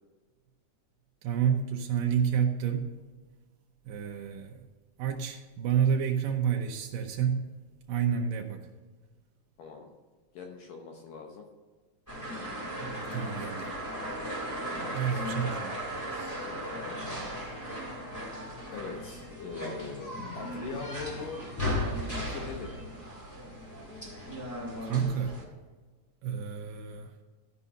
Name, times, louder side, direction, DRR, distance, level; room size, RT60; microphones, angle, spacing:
voice 1, 1.2-2.9 3.9-4.6 5.0-7.6 7.9-8.7 12.8-13.7 14.9-15.8 24.8-25.4 26.2-27.1, right 8 dB, 85° right, 2 dB, 1.9 m, -29 dB
voice 2, 9.6-9.9 10.3-11.4 14.5-15.3 16.1-17.5 18.7-21.5 22.1-22.9, left 5 dB, 70° left, 2 dB, 2.1 m, -42 dB
sound 1, 12.1-25.4, equal, 5° left, 1.5 m, -36 dB
14.0 x 5.5 x 5.5 m, 1.4 s
omnidirectional pair, 5.1 m